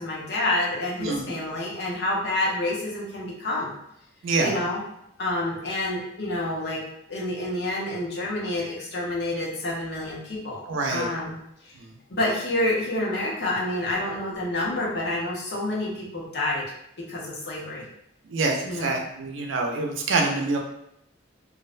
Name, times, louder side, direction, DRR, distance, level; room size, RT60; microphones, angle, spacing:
voice 1, 0.0-3.7 4.4-4.8 5.2-10.6 10.9-11.3 11.6-11.7 12.1-16.6 17.0-17.8 18.6-18.9, left 1 dB, 60° left, -3 dB, 0.6 m, -28 dB
voice 2, 1.0-1.3 4.2-4.6 10.7-11.1 11.7-11.9 18.2-20.6, right 3 dB, 90° right, 2 dB, 0.4 m, -26 dB
2.4 x 2.1 x 2.4 m, 0.78 s
head